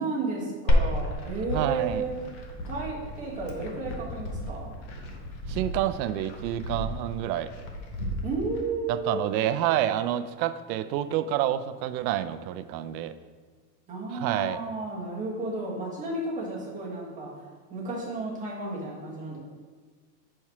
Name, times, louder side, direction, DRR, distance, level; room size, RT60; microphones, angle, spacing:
voice 1, 0.0-2.1 2.7-4.7 8.2-9.3 13.9-17.4 17.7-19.4, right 3 dB, 15° right, -5 dB, 1.3 m, -32 dB
Glass, 0.7-8.6, equal, 30° left, 0.4 m, -31 dB
voice 2, 1.5-2.0 5.5-7.5 8.9-13.1 14.1-14.6, right 12 dB, 85° right, 12 dB, 0.6 m, -28 dB
4.8 x 4.4 x 5.8 m, 1.5 s
supercardioid pair, 170°, 50 cm